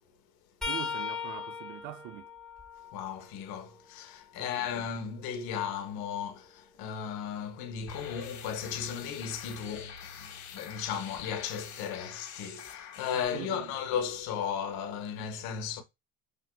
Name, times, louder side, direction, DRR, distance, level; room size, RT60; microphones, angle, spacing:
sound 1, 0.6-4.4 4.9-6.9 9.8-10.0 11.2-11.4 12.7-12.8, left 6 dB, ahead, 1.3 m, -41 dB
voice 1, 0.6-2.3 4.4-4.7 13.1-13.7, right 13 dB, 70° right, 0.7 m, -43 dB
voice 2, 2.9-15.8, left 7 dB, 70° left, 1.0 m, -35 dB
sound 2, 7.9-13.3, left 7 dB, 50° left, 1.3 m, -45 dB
5.3 x 2.7 x 2.2 m
supercardioid pair, 90°, 38 cm